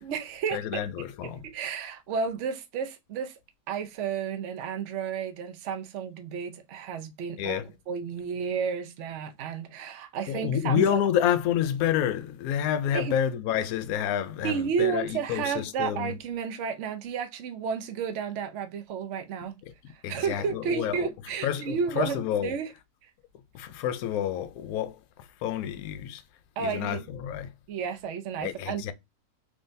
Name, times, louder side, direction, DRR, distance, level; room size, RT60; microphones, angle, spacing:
voice 1, 0.0-0.8 1.2-3.4 3.7-7.6 7.9-11.0 12.9-13.2 14.4-19.6 19.9-22.7 26.6-27.1 27.7-28.9, right 6 dB, 65° right, 0.7 m, -32 dB
voice 2, 0.5-1.4 7.4-7.7 10.3-16.1 20.0-21.1 21.4-22.5 23.5-25.0 25.4-26.2 26.6-27.5 28.4-28.9, left 10 dB, 70° left, 0.9 m, -28 dB
3.7 x 3.2 x 2.6 m
omnidirectional pair, 2.0 m